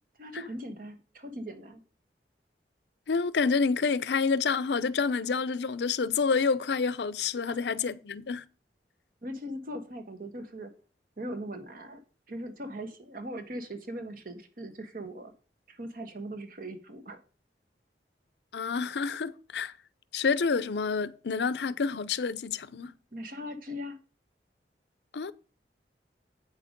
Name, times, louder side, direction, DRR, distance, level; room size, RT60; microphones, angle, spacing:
voice 1, 0.2-1.8 7.4-7.6 9.2-10.7 11.2-12.0 12.3-15.3 15.7-17.2 23.1-24.0, equal, 50° right, 1.3 m, -40 dB
voice 2, 3.1-8.4 18.5-19.7 20.1-22.9 25.1-25.3, left 5 dB, 75° left, 0.5 m, -28 dB
8.5 x 5.9 x 5.1 m
head